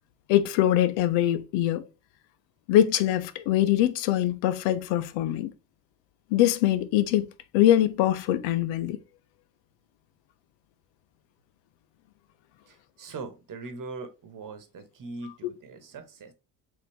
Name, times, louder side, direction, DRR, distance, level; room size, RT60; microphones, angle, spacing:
voice 1, 0.3-1.8 2.7-5.5 6.3-7.3 7.5-9.0 15.4-15.5, left 12 dB, 75° left, 0.6 m, -23 dB
voice 2, 12.7-16.3, right 3 dB, 45° right, 1.1 m, -41 dB
4.0 x 2.7 x 3.5 m
supercardioid pair, 75°, 46 cm